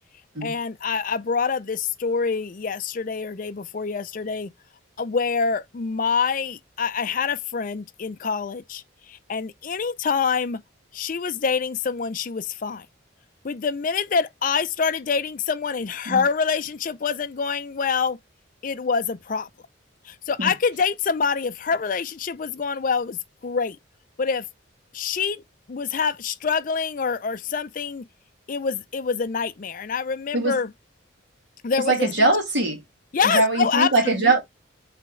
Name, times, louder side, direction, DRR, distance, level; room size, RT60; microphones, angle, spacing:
voice 1, 0.4-4.5 5.0-10.6 10.9-12.9 13.4-18.2 18.6-19.5 20.0-23.8 24.2-24.5 24.9-25.4 25.7-28.1 28.5-30.7 31.6-32.3 33.1-34.3, left 5 dB, 45° left, 0.4 m, -26 dB
voice 2, 31.8-32.8 33.2-34.4, right 2 dB, 65° right, 1.8 m, -21 dB
5.0 x 3.4 x 3.1 m
head